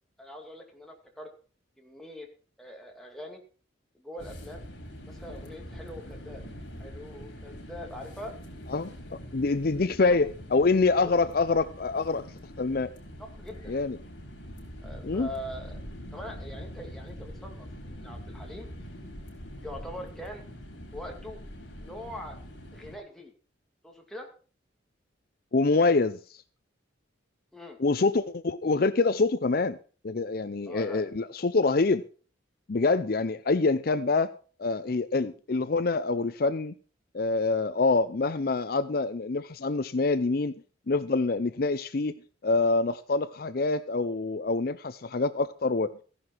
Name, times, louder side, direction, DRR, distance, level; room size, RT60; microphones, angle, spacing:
voice 1, 0.2-1.3 1.8-2.3 2.6-3.4 3.9-4.6 5.0-6.4 6.8-8.3 10.1-10.2 11.0-11.1 13.2-13.7 14.8-15.8 16.1-18.7 19.6-20.4 20.9-21.4 21.8-22.4 22.7-23.3 23.8-24.3 27.5-27.8 30.7-31.0, equal, ahead, 2.5 m, -42 dB
sound 1, 4.2-23.0, equal, 70° left, 5.5 m, -44 dB
voice 2, 8.7-12.3 12.6-12.9 13.7-14.0 15.0-15.3 25.5-26.4 27.8-29.8 30.0-32.0 32.7-34.3 34.6-36.7 37.1-40.5 40.9-42.2 42.4-45.9, left 3 dB, 50° left, 0.5 m, -26 dB
15.0 x 11.0 x 4.5 m
head